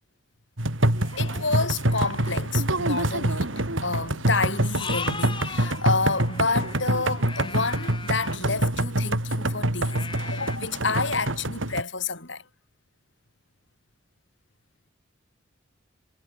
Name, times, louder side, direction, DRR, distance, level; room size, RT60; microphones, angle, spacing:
sound 1, 0.6-11.8, right 1 dB, 80° right, 4.8 m, -26 dB
sound 2, 1.0-2.5 3.3-3.4 3.7-3.8 4.7-8.4 9.9-10.6, left 5 dB, 25° left, 5.0 m, -39 dB
voice 1, 1.2-12.5, left 4 dB, 70° left, 6.0 m, -29 dB
head